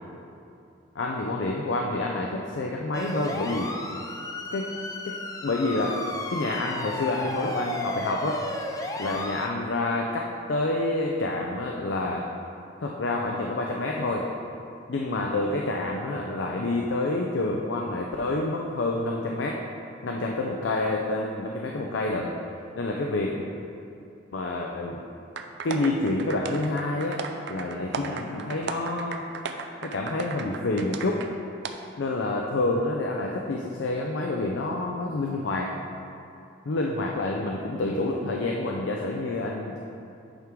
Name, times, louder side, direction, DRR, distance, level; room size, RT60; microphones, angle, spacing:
voice 1, 0.9-3.7 4.5-4.7 5.0-6.0 6.3-8.4 9.0-12.2 12.8-14.2 14.9-19.6 20.0-22.3 22.8-23.4 24.3-25.0 25.6-27.2 27.5-29.2 29.8-31.2 32.0-35.7 36.7-39.8, left 2 dB, 70° left, 0 dB, 0.5 m, -28 dB
sound 1, 2.9-9.5, left 2 dB, 20° left, 0.4 m, -34 dB
sound 2, 25.4-31.3 31.6-31.7, right 5 dB, 65° right, 0.4 m, -35 dB
8.9 x 3.7 x 4.6 m, 2.6 s
head